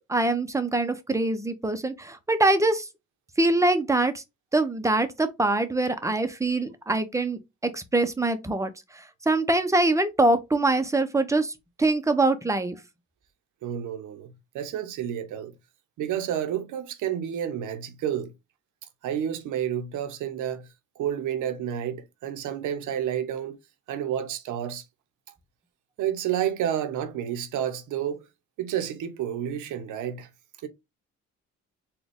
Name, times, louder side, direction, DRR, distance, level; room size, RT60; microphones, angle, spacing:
voice 1, 0.1-2.9 3.4-4.2 4.5-11.5 11.8-12.8, right 2 dB, 10° right, 0.6 m, -24 dB
voice 2, 13.6-15.6 16.0-18.3 19.0-20.7 21.0-23.6 23.9-24.8 26.0-28.3 28.6-30.3 30.6-30.7, right 10 dB, 80° right, 0.8 m, -30 dB
4.1 x 2.3 x 3.5 m
cardioid pair, 90°, 30 cm